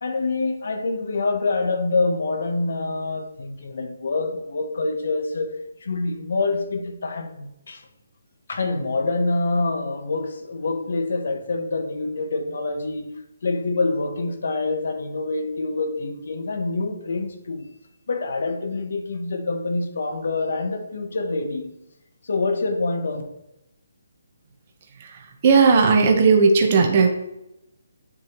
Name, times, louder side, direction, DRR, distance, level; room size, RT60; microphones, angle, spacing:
voice 1, 0.0-7.9 8.5-13.1 13.4-17.7 18.1-21.7 22.2-23.2, left 3 dB, 60° left, 1.0 m, -26 dB
voice 2, 25.4-27.1, right 5 dB, 30° right, 0.9 m, -16 dB
9.9 x 3.4 x 3.0 m
hypercardioid pair, 170°, 0 cm